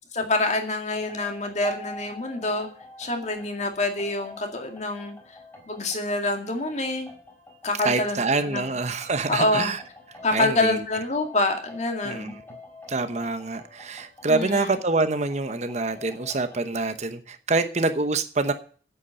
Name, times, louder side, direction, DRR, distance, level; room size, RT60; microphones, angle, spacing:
voice 1, 0.1-2.7 3.0-5.4 5.7-7.1 7.6-8.2 8.5-8.7 9.3-9.7 10.2-12.4 14.3-14.7, left 2 dB, 35° left, 4 dB, 2.1 m, -26 dB
sound 1, 0.9-16.7, left 2 dB, 15° left, 4.5 m, -46 dB
voice 2, 7.8-9.8 10.3-10.8 12.0-12.4 12.9-18.5, right 3 dB, 35° right, 9 dB, 0.9 m, -26 dB
9.9 x 8.2 x 7.7 m, 0.43 s
head